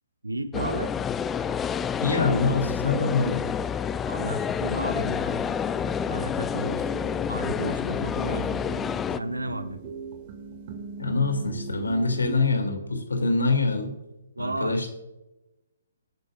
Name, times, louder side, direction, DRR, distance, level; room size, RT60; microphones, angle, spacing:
voice 1, 0.2-0.9 4.1-5.5 6.1-6.9 7.3-8.6 9.2-9.8 14.4-14.8, right 2 dB, 85° right, 9 dB, 1.2 m, -33 dB
sound 1, 0.5-9.2, left 7 dB, 15° left, 0.4 m, -28 dB
voice 2, 2.0-3.5 11.0-13.9 14.4-14.9, left 3 dB, 80° left, 5 dB, 2.7 m, -25 dB
sound 2, 5.3-12.5, right 4 dB, 40° right, 2.3 m, -40 dB
24.0 x 9.3 x 2.5 m, 1.0 s
figure-of-eight pair, 135°, 0 cm